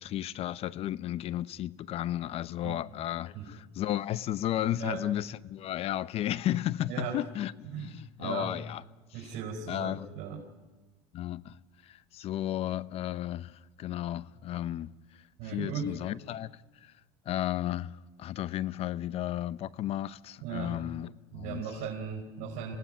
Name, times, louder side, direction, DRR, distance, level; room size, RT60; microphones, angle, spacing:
voice 1, 0.0-8.8 9.7-10.2 11.1-11.6 11.8-14.9 15.4-16.9 17.3-21.6, left 12 dB, 45° left, 0.7 m, -34 dB
voice 2, 4.7-5.0 6.9-7.2 7.7-8.6 9.1-10.4 15.4-16.0 20.4-20.7 21.3-22.7, right 7 dB, 70° right, 5.1 m, -37 dB
26.5 x 17.0 x 9.3 m
supercardioid pair, 120°, 14 cm